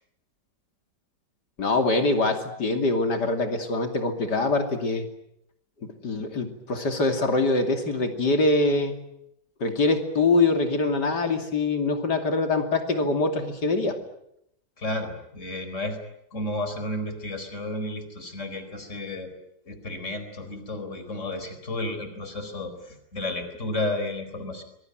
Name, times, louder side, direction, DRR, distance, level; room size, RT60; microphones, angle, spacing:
voice 1, 1.6-5.1 6.0-9.0 9.6-14.0, left 3 dB, 60° left, 5 dB, 3.4 m, -24 dB
voice 2, 14.8-16.0 16.3-19.3 19.7-24.6, left 1 dB, 40° left, 8 dB, 4.7 m, -32 dB
26.0 x 22.5 x 9.1 m, 0.77 s
omnidirectional pair, 2.0 m